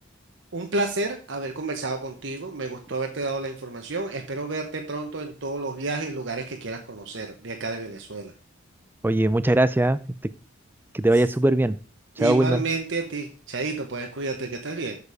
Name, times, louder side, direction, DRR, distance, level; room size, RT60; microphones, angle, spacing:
voice 1, 0.5-8.3 12.2-15.0, right 3 dB, 65° right, 4 dB, 1.0 m, -30 dB
voice 2, 9.0-10.0 10.9-11.8 12.2-12.6, right 1 dB, 10° right, 15 dB, 0.4 m, -20 dB
6.8 x 6.8 x 4.9 m, 0.40 s
head